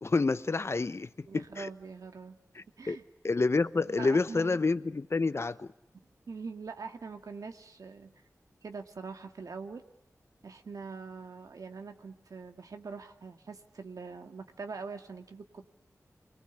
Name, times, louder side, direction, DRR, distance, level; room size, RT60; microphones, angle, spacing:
voice 1, 0.0-1.7 2.5-3.0 3.2-5.7, left 3 dB, 50° left, 0.9 m, -29 dB
voice 2, 1.3-2.4 2.8-3.0 3.8-4.6 6.3-8.1 8.6-9.8 10.4-15.7, right 4 dB, 80° right, 2.2 m, -43 dB
28.5 x 23.0 x 8.3 m
wide cardioid pair, 70°, 6 cm